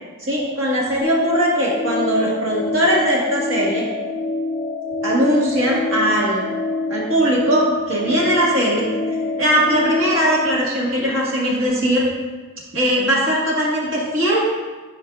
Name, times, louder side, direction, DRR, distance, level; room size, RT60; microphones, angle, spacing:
voice 1, 0.2-3.8 5.0-6.4 6.9-12.1 12.7-14.5, equal, 60° right, -4 dB, 1.5 m, -20 dB
sound 1, 1.0-10.6, left 2 dB, 30° right, 0.7 m, -26 dB
10.0 x 4.7 x 2.4 m, 1.3 s
head